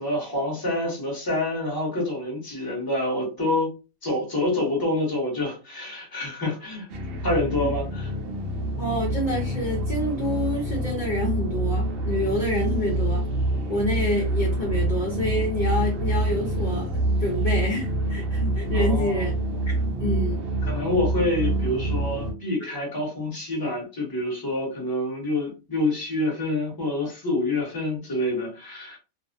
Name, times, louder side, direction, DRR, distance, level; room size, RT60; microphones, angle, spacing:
voice 1, 0.0-3.7 4.0-6.9 7.2-8.1 18.7-19.3 20.6-29.0, left 1 dB, 20° left, 0.9 m, -27 dB
sound 1, 6.9-22.3, right 1 dB, 60° right, 0.7 m, -26 dB
voice 2, 8.8-13.2 13.7-16.9 17.2-19.3 20.0-20.5, left 1 dB, 45° left, 0.7 m, -27 dB
2.4 x 2.0 x 2.5 m
omnidirectional pair, 1.4 m